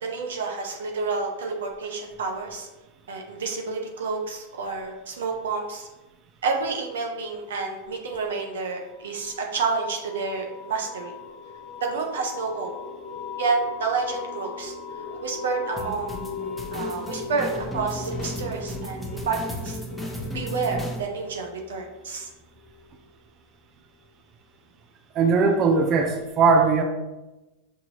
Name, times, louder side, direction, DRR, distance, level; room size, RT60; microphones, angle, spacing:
voice 1, 0.0-2.7 3.1-5.9 6.4-11.1 11.8-12.7 13.4-14.7 15.1-19.0 19.3-19.8 20.3-22.3, right 4 dB, 85° right, 2 dB, 0.8 m, -29 dB
sound 1, 8.9-23.3, left 5 dB, 55° left, 0.6 m, -39 dB
sound 2, 15.8-21.0, equal, 5° right, 0.9 m, -34 dB
voice 2, 25.1-26.8, right 4 dB, 40° right, 4 dB, 0.5 m, -19 dB
5.8 x 2.6 x 3.0 m, 1.1 s
hypercardioid pair, 115°, 0 cm